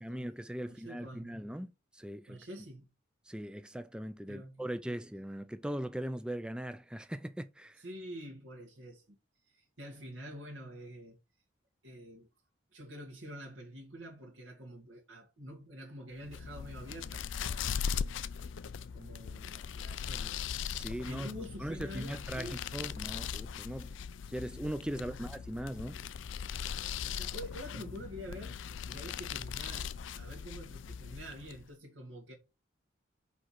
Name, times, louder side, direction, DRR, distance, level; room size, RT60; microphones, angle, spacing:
voice 1, 0.0-2.4 3.3-7.8 20.7-21.3 21.6-24.0 24.3-26.1, right 1 dB, 5° right, 0.4 m, -40 dB
voice 2, 0.6-1.4 2.3-2.9 4.3-5.0 7.8-9.2 9.5-11.2 11.8-12.3 12.7-17.8 18.4-20.4 20.8-22.6 24.9-25.3 27.0-28.6 28.9-32.3, equal, 75° right, 2.1 m, -47 dB
sound 1, 16.2-31.7, left 7 dB, 75° left, 0.4 m, -39 dB
5.3 x 4.8 x 5.8 m
head